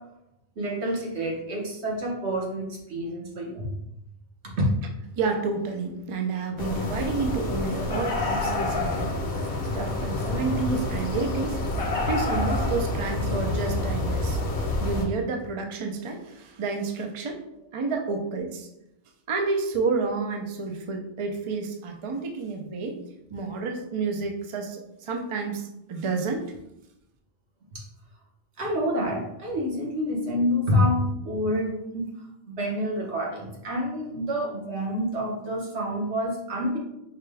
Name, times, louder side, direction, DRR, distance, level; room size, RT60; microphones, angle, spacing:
voice 1, 0.6-3.7 4.4-4.7 10.7-10.8 27.7-27.8 28.6-32.1 32.5-36.8, equal, 75° right, -2 dB, 1.3 m, -28 dB
voice 2, 5.2-11.8 12.1-14.4 14.8-17.4 17.7-18.7 19.3-23.0 23.3-26.4, right 4 dB, 50° right, 3 dB, 0.4 m, -30 dB
sound 1, 6.6-15.0, left 2 dB, 60° left, 0.9 m, -28 dB
5.0 x 2.2 x 3.3 m, 0.84 s
omnidirectional pair, 1.2 m